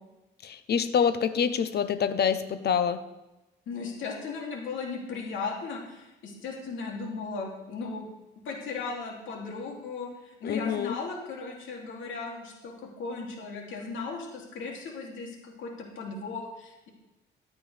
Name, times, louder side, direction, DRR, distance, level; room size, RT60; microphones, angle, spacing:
voice 1, 0.4-3.0 10.4-11.0, left 7 dB, 55° left, 12 dB, 0.9 m, -26 dB
voice 2, 3.7-8.1 8.4-16.9, left 4 dB, 75° left, -1 dB, 2.8 m, -37 dB
14.0 x 8.5 x 3.4 m, 0.99 s
cardioid pair, 90°, 20 cm